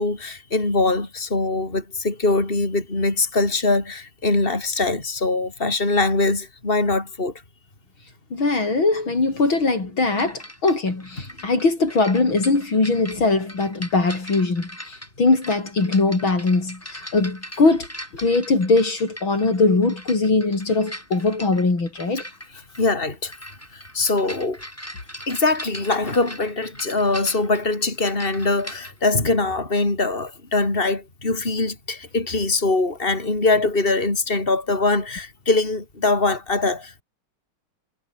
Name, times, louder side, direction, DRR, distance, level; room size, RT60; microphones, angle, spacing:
voice 1, 0.0-7.3 22.8-23.3 23.7-24.6 25.3-37.0, left 3 dB, 25° left, 4.9 m, -22 dB
voice 2, 8.3-17.9 18.1-22.2, left 3 dB, 65° left, 5.9 m, -21 dB
sound 1, 10.2-28.9, equal, 5° left, 6.7 m, -40 dB
omnidirectional pair, 2.4 m